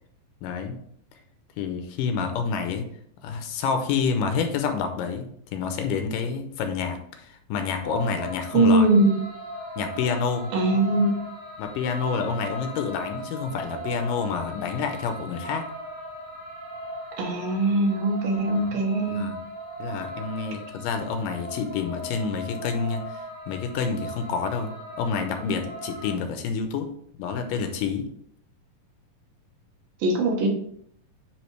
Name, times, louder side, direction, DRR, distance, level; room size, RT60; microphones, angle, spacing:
voice 1, 0.4-0.8 1.6-2.9 3.2-8.9 9.8-10.5 11.6-15.7 18.6-18.8 19.1-19.4 19.8-26.9 27.2-28.1, left 5 dB, 80° left, 6 dB, 2.2 m, -28 dB
sound 1, 7.8-26.1, right 1 dB, 10° right, 1.0 m, -38 dB
voice 2, 8.5-9.2 10.5-11.3 17.2-19.4 30.0-30.5, right 2 dB, 90° right, 2 dB, 3.0 m, -21 dB
10.0 x 3.5 x 3.2 m, 0.67 s
omnidirectional pair, 4.0 m